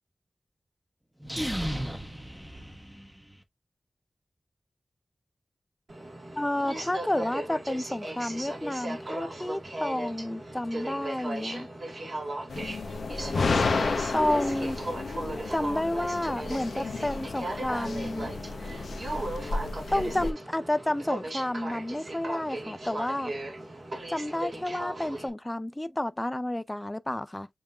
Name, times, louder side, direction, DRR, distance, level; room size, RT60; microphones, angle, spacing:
sound 1, 1.2-3.3, equal, 5° right, 0.8 m, -34 dB
Aircraft, 5.9-25.3, right 1 dB, 55° right, 1.6 m, -37 dB
voice 1, 6.4-11.7 14.1-14.8 15.5-18.3 19.9-23.3 24.1-27.5, left 1 dB, 15° left, 0.4 m, -30 dB
sound 2, 12.5-20.3, left 4 dB, 90° left, 0.7 m, -32 dB
7.1 x 2.7 x 2.4 m
wide cardioid pair, 100°, 0 cm